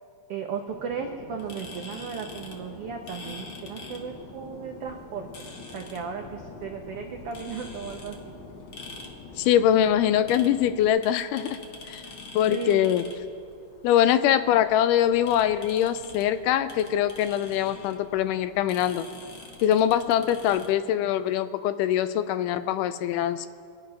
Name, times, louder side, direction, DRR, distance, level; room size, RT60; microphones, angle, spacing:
voice 1, 0.3-5.3 5.7-8.1 12.5-12.9, right 6 dB, 85° right, 3 dB, 1.3 m, -35 dB
Fixed-wing aircraft airplane, 0.7-10.9, left 3 dB, 65° left, 1.0 m, -45 dB
sound 1, 1.4-20.7, left 3 dB, 50° left, 1.6 m, -46 dB
voice 2, 9.4-11.6 11.9-12.0 12.4-13.1 13.8-19.1 19.6-23.5, left 10 dB, 80° left, 12 dB, 2.1 m, -23 dB
24.5 x 9.8 x 5.5 m, 2.4 s
omnidirectional pair, 3.8 m